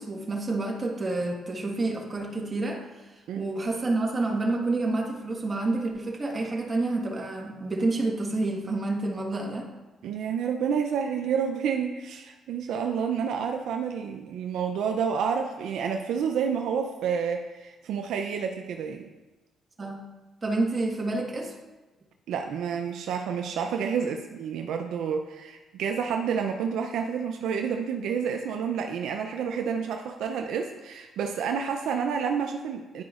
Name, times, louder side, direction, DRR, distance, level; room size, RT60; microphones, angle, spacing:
voice 1, 0.0-9.7 19.8-20.1 20.4-21.5, right 2 dB, 30° right, 0 dB, 1.4 m, -29 dB
voice 2, 10.0-19.1 22.3-33.0, right 7 dB, 80° right, 4 dB, 0.4 m, -29 dB
10.5 x 4.9 x 2.4 m, 1.1 s
cardioid pair, 90°, 0 cm